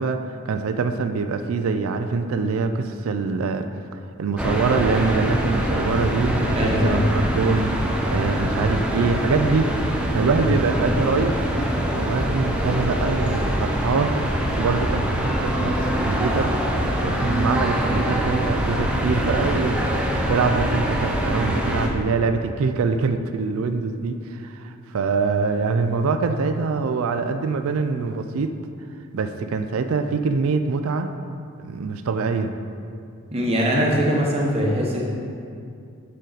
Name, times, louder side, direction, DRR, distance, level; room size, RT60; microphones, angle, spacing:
voice 1, 0.0-3.7 4.2-11.4 11.9-16.5 17.0-28.5 29.1-31.1 31.6-32.5, right 4 dB, 65° right, 8 dB, 0.4 m, -24 dB
sound 1, 4.4-21.9, equal, 5° right, 0.5 m, -24 dB
voice 2, 6.5-7.1 10.3-10.5 33.3-35.1, equal, 25° right, -2 dB, 1.0 m, -22 dB
6.5 x 6.3 x 4.0 m, 2.4 s
head